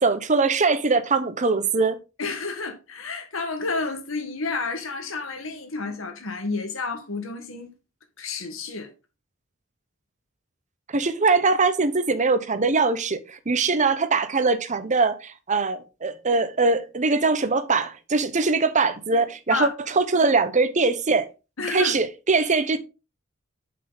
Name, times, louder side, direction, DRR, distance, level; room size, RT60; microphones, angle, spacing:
voice 1, 0.0-2.0 10.9-21.3 21.7-22.8, right 4 dB, 35° right, 0.9 m, -22 dB
voice 2, 2.2-7.7 8.2-8.9 19.5-19.7 21.6-22.0, left 3 dB, 75° left, 1.7 m, -30 dB
7.4 x 5.7 x 4.0 m
head